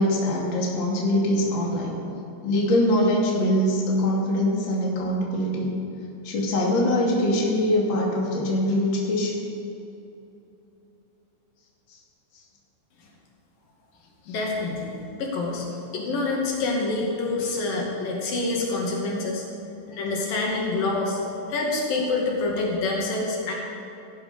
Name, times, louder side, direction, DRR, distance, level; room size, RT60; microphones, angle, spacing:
voice 1, 0.0-1.9 2.4-5.7 6.2-9.3 11.9-12.0 14.3-14.4 19.1-19.2, left 1 dB, 35° left, -3 dB, 3.0 m, -23 dB
voice 2, 14.3-14.9 15.2-19.4 19.9-21.2 21.5-23.5, left 3 dB, 80° left, -1 dB, 4.1 m, -26 dB
17.5 x 12.5 x 5.7 m, 2.9 s
omnidirectional pair, 3.9 m